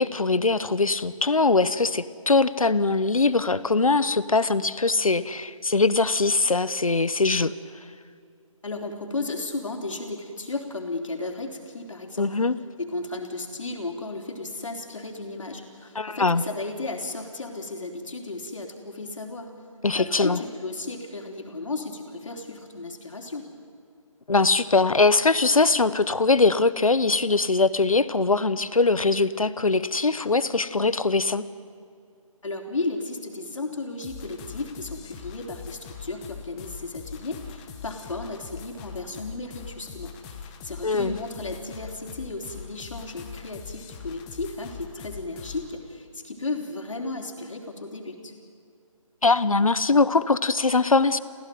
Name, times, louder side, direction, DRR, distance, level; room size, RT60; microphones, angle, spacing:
voice 1, 0.0-7.5 12.2-12.6 15.9-16.4 19.8-20.4 24.3-31.4 40.8-41.2 49.2-51.2, left 3 dB, 80° left, 15 dB, 1.1 m, -22 dB
voice 2, 8.6-12.4 12.8-19.5 19.9-23.4 32.4-48.3, left 3 dB, 65° left, 3 dB, 3.9 m, -34 dB
sound 1, 34.0-45.7, left 6 dB, 15° left, 1.3 m, -42 dB
26.5 x 16.0 x 9.4 m, 2.4 s
figure-of-eight pair, 155°, 17 cm